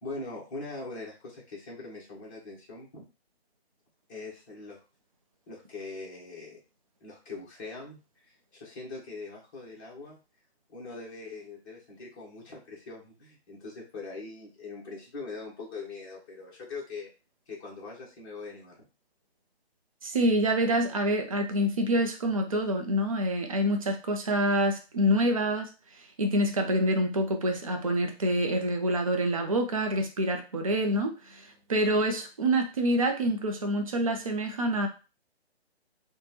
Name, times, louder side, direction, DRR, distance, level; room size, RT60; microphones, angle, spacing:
voice 1, 0.0-3.1 4.1-4.8 5.5-6.6 7.0-10.2 10.7-17.1 17.5-18.7, left 3 dB, 20° left, -5 dB, 0.8 m, -42 dB
voice 2, 20.0-25.7 26.2-34.9, right 1 dB, 35° right, 6 dB, 0.4 m, -26 dB
3.1 x 2.1 x 2.9 m, 0.31 s
figure-of-eight pair, 140°, 32 cm